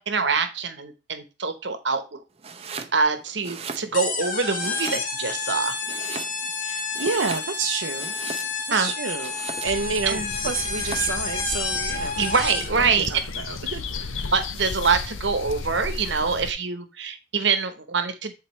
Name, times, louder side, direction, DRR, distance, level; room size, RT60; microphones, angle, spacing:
voice 1, 0.0-2.2 2.9-5.8 8.7-8.9 10.1-10.3 12.2-13.1 14.3-18.3, right 5 dB, 65° right, 1.0 m, -25 dB
Domestic sounds home sounds, 2.4-3.0 3.3-4.2 4.6-5.4 5.8-6.6 6.9-8.7 9.2-9.9 10.5-11.2, right 5 dB, 30° right, 0.6 m, -37 dB
sound 1, 3.9-12.8, left 4 dB, 45° left, 1.4 m, -30 dB
voice 2, 6.6-8.2 8.7-9.3 9.6-12.4 12.8-14.2, right 5 dB, 85° right, 0.6 m, -29 dB
sound 2, 9.6-16.5, left 4 dB, 90° left, 0.7 m, -34 dB
10.0 x 4.3 x 3.2 m
head